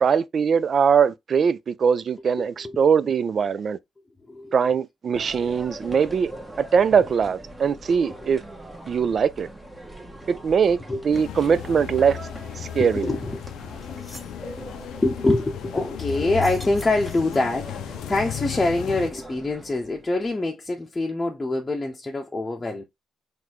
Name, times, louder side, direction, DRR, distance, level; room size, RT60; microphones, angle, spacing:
voice 1, 0.0-3.8 4.5-6.3 6.6-8.4 8.9-9.5 10.3-10.8 11.0-12.2 12.6-13.1, right 6 dB, 50° right, 0.4 m, -21 dB
voice 2, 2.4-2.8 4.3-4.5 5.4-5.5 8.1-8.2 10.9-11.0 11.3-11.5 12.8-13.4 15.0-22.8, left 2 dB, 20° left, 0.8 m, -25 dB
sound 1, 5.1-20.3, right 1 dB, 15° right, 1.1 m, -42 dB
sound 2, 11.1-19.1, left 11 dB, 85° left, 0.5 m, -35 dB
sound 3, 13.4-13.5 13.8-14.4 16.3-17.6, left 1 dB, ahead, 1.5 m, -45 dB
3.9 x 3.2 x 3.0 m
cardioid pair, 90°, 0 cm